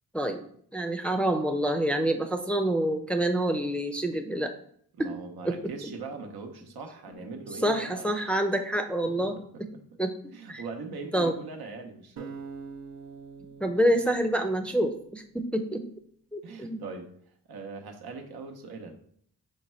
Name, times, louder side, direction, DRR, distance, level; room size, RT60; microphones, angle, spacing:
voice 1, 0.7-4.5 5.0-5.1 5.4-5.5 7.6-9.3 10.0-10.1 10.5-10.6 11.1-11.3 13.6-15.8 16.3-16.8, right 1 dB, 5° left, 5 dB, 0.5 m, -27 dB
voice 2, 4.9-8.1 9.0-9.6 10.3-12.4 16.4-17.1 17.5-18.9, right 4 dB, 75° right, 4 dB, 0.8 m, -41 dB
sound 1, 12.2-15.3, right 5 dB, 45° right, 0.7 m, -45 dB
5.1 x 2.3 x 4.2 m, 0.64 s
cardioid pair, 50°, 38 cm